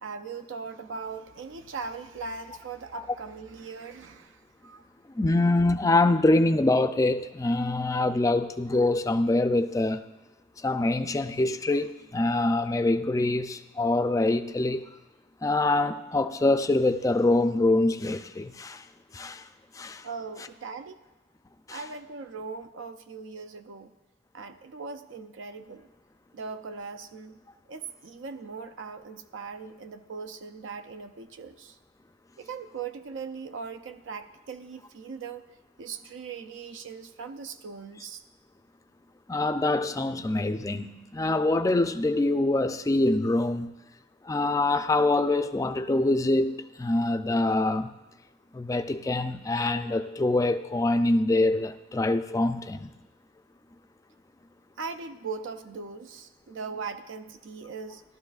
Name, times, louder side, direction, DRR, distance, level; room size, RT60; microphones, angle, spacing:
voice 1, 0.0-4.9 20.0-21.0 21.7-23.9 24.3-25.9 26.3-27.4 27.7-31.8 32.4-35.4 35.8-38.2 54.8-58.0, right 5 dB, 75° right, 0.5 m, -39 dB
voice 2, 5.1-10.0 10.6-14.9 15.4-18.8 19.1-19.5 19.7-20.1 21.7-21.8 39.3-43.7 44.2-47.9 48.5-52.9, left 2 dB, 15° left, 0.4 m, -25 dB
17.0 x 12.5 x 2.4 m
head